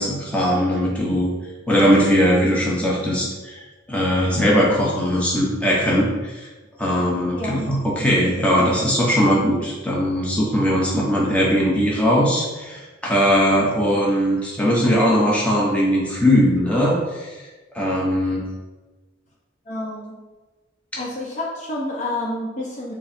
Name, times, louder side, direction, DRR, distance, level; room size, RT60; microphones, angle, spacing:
voice 1, 0.0-1.3 1.7-3.6 3.9-6.5 6.8-17.3 17.7-18.4, equal, 5° left, -5 dB, 0.9 m, -19 dB
voice 2, 19.7-20.1 21.0-22.9, left 1 dB, 40° left, -3 dB, 0.8 m, -29 dB
3.7 x 3.2 x 4.3 m, 1.2 s
head